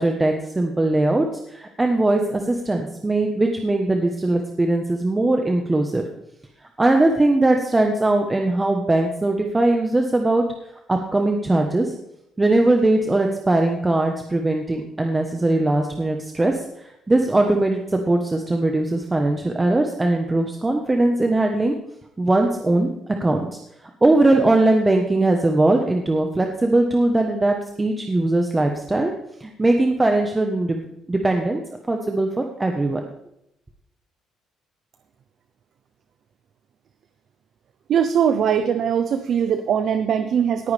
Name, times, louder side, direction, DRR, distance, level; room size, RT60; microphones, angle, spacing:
voice 1, 0.0-6.0 6.8-10.4 10.9-11.9 12.4-21.7 22.2-22.9 23.2-23.4 24.0-29.1 29.4-31.6 31.9-33.0, right 2 dB, 15° right, 3 dB, 1.2 m, -20 dB
voice 2, 37.9-40.7, right 8 dB, 55° right, 9 dB, 0.8 m, -21 dB
18.5 x 9.5 x 3.5 m, 0.79 s
cardioid pair, 130°, 0 cm